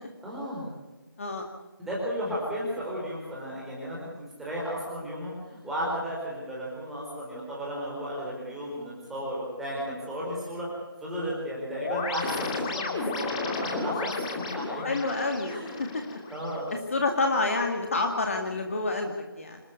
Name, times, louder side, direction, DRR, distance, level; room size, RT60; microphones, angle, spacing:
voice 1, 0.2-0.7 1.8-10.7 11.0-14.9 15.4-15.7 16.3-16.7, equal, ahead, -6 dB, 4.5 m, -34 dB
sound 1, 11.8-16.7, left 3 dB, 15° left, 2.5 m, -33 dB
voice 2, 14.8-15.5 15.8-16.2 16.9-19.6, left 3 dB, 35° left, 3 dB, 2.2 m, -28 dB
26.5 x 13.0 x 8.2 m, 1.2 s
figure-of-eight pair, 165°, 12 cm